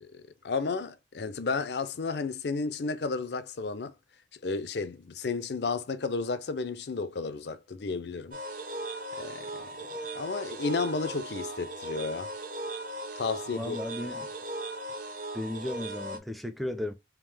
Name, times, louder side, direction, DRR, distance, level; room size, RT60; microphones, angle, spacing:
voice 1, 0.0-3.9 4.4-8.4 9.1-9.8 10.1-12.3 13.2-13.8 14.1-14.2, left 4 dB, 70° left, 0.5 m, -32 dB
sound 1, 8.3-16.2, right 1 dB, 50° right, 0.7 m, -38 dB
voice 2, 13.5-14.3 15.3-16.9, left 1 dB, ahead, 0.5 m, -35 dB
3.6 x 2.9 x 3.3 m
head